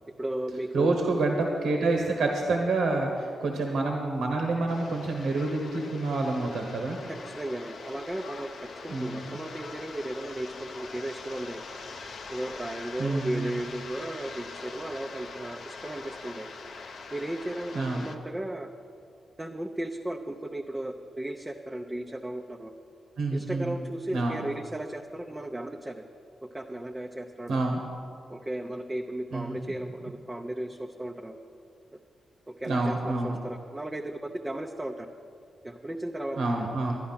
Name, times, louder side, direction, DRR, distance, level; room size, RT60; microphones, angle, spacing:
voice 1, 0.2-1.0 7.1-8.5 8.8-11.6 12.3-16.5 17.1-18.7 19.4-22.7 23.3-26.0 26.5-27.6 28.3-31.4 32.5-35.1 35.6-36.7, right 1 dB, 20° right, 1 dB, 0.7 m, -35 dB
voice 2, 0.7-7.0 8.9-9.4 13.0-13.6 17.7-18.1 23.2-23.8 24.1-24.4 27.5-27.8 29.3-29.6 32.6-33.4 36.4-37.0, right 2 dB, 90° right, 1 dB, 1.3 m, -28 dB
sound 1, 4.7-18.2, left 4 dB, 75° left, 0.8 m, -43 dB
11.5 x 11.0 x 5.8 m, 2.4 s
cardioid pair, 75°, 0 cm